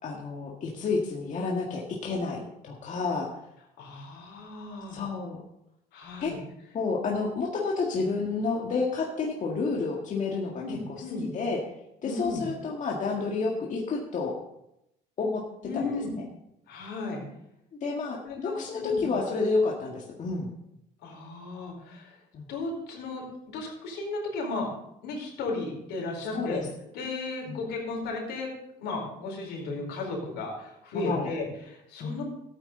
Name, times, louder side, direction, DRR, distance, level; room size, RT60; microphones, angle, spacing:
voice 1, 0.0-3.3 4.9-5.4 6.2-6.3 6.7-11.0 11.3-11.6 12.0-14.3 15.2-15.4 15.7-15.9 16.2-16.3 17.8-20.5 22.3-22.5 26.3-26.7 27.5-27.6 30.9-31.3 32.0-32.1, left 4 dB, 45° left, -2 dB, 1.9 m, -30 dB
voice 2, 3.8-5.0 5.9-6.4 10.6-11.3 12.0-12.4 15.6-16.1 16.7-17.2 18.2-19.1 21.0-22.2 22.5-24.7 25.0-26.6 26.9-28.5 28.8-32.2, left 3 dB, 80° left, -1 dB, 4.5 m, -35 dB
14.0 x 8.9 x 3.9 m, 0.81 s
cardioid pair, 110°, 17 cm